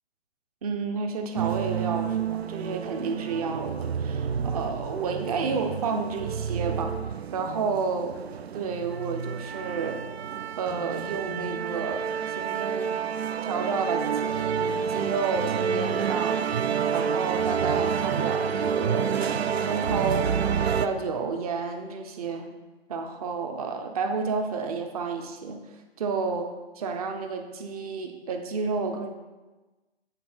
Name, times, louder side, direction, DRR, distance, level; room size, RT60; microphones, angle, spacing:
voice 1, 0.6-7.0 7.3-8.2 8.5-10.0 10.6-13.1 13.4-16.4 16.9-19.1 19.6-20.3 20.8-22.5 22.9-25.6 26.0-26.5 26.8-29.1, right 4 dB, 35° right, 5 dB, 0.9 m, -31 dB
sound 1, 1.4-20.9, right 7 dB, 75° right, 0.6 m, -29 dB
8.4 x 3.9 x 5.7 m, 1.2 s
figure-of-eight pair, 140°, 32 cm